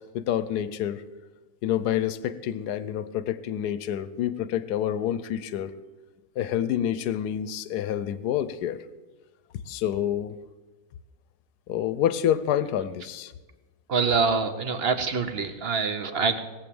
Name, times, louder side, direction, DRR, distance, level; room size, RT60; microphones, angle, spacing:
voice 1, 0.1-1.0 1.6-5.7 6.4-8.8 9.7-10.3 11.7-13.3, left 10 dB, 90° left, 15 dB, 1.2 m, -28 dB
voice 2, 13.9-16.4, right 5 dB, 45° right, 9 dB, 1.1 m, -25 dB
19.5 x 7.5 x 7.0 m, 1.2 s
omnidirectional pair, 1.6 m